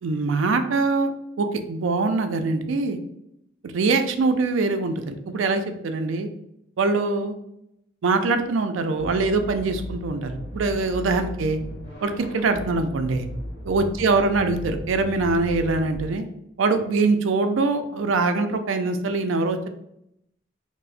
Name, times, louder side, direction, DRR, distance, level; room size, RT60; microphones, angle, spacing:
voice 1, 0.0-1.1 1.4-3.0 3.6-6.3 6.8-7.4 8.0-11.6 12.0-13.3 13.6-16.3 16.6-19.7, right 3 dB, 80° right, 7 dB, 0.4 m, -23 dB
sound 1, 9.0-16.1, equal, 60° left, 1.4 m, -36 dB
4.7 x 2.0 x 2.5 m, 0.80 s
head